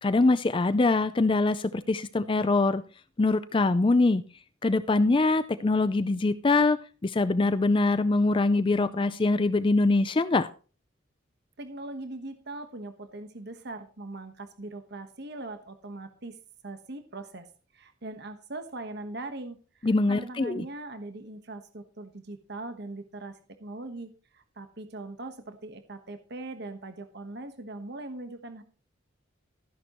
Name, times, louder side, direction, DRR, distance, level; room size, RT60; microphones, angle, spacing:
voice 1, 0.0-2.8 3.2-4.2 4.6-10.5 19.8-20.6, left 3 dB, 25° left, 13 dB, 0.4 m, -23 dB
voice 2, 11.6-16.4 16.6-17.5 17.7-28.6, right 2 dB, 55° right, 8 dB, 1.3 m, -40 dB
14.0 x 10.5 x 3.0 m, 0.37 s
head